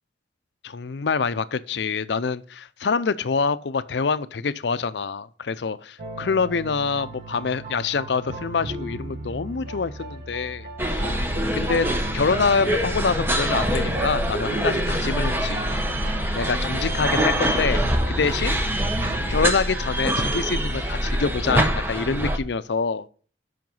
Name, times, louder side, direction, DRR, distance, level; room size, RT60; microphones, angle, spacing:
voice 1, 0.6-11.1 11.5-15.7 16.3-18.6 19.3-23.1, left 5 dB, 70° left, 0.5 m, -26 dB
sound 1, 6.0-19.3, right 1 dB, 60° right, 1.3 m, -36 dB
sound 2, 10.8-22.4, right 1 dB, 10° right, 0.9 m, -24 dB
7.7 x 5.8 x 5.4 m
head